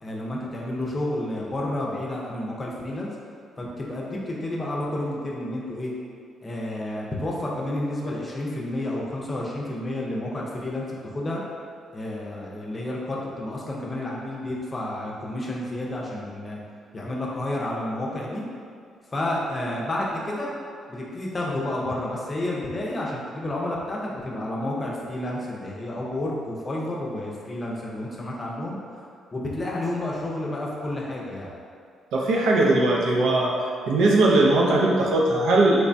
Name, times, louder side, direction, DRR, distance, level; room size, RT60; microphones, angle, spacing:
voice 1, 0.0-3.1 3.6-5.9 6.4-10.9 11.1-11.4 11.9-16.6 16.9-18.4 19.1-20.5 20.9-29.0 29.3-31.5, left 1 dB, 30° left, -3 dB, 0.5 m, -30 dB
voice 2, 32.1-33.5 33.9-35.9, right 2 dB, 85° right, -3 dB, 0.4 m, -19 dB
3.1 x 2.2 x 2.5 m, 2.3 s
cardioid pair, 90°, 0 cm